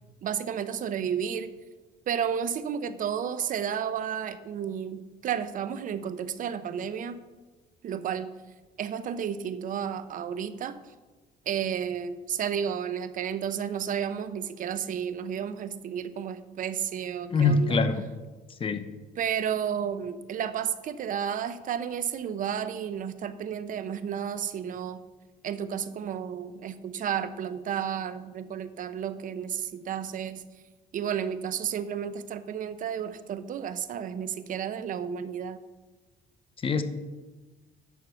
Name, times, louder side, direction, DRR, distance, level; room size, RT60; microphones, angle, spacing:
voice 1, 0.2-1.5 2.1-7.2 7.8-8.3 8.8-10.8 11.5-17.8 19.2-25.0 25.4-30.4 30.9-35.6, right 8 dB, 50° right, 13 dB, 0.7 m, -32 dB
voice 2, 17.3-18.1 18.6-18.9 36.6-36.8, left 4 dB, 30° left, 8 dB, 0.8 m, -24 dB
10.5 x 4.7 x 7.0 m, 1.3 s
cardioid pair, 110°, 17 cm